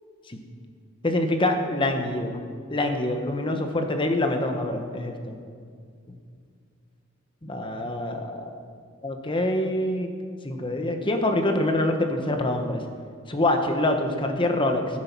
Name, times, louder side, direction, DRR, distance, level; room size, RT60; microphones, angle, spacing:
voice 1, 1.0-2.4 2.7-5.4 6.1-6.2 7.4-8.5 9.0-10.1 10.4-12.8 13.3-14.8, left 1 dB, 25° left, 5 dB, 1.1 m, -25 dB
14.5 x 7.5 x 6.1 m, 2.2 s
head